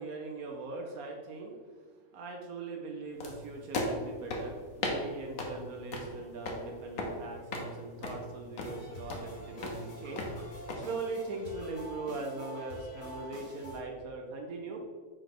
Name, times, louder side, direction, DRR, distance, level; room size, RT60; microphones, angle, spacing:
voice 1, 0.0-1.9 2.1-14.8, right 3 dB, 85° right, 1 dB, 1.3 m, -40 dB
sound 1, 3.2-10.8, left 2 dB, 85° left, 1.5 m, -38 dB
sound 2, 8.6-13.8, equal, 65° left, 1.8 m, -47 dB
4.9 x 4.6 x 6.0 m, 1.5 s
omnidirectional pair, 1.5 m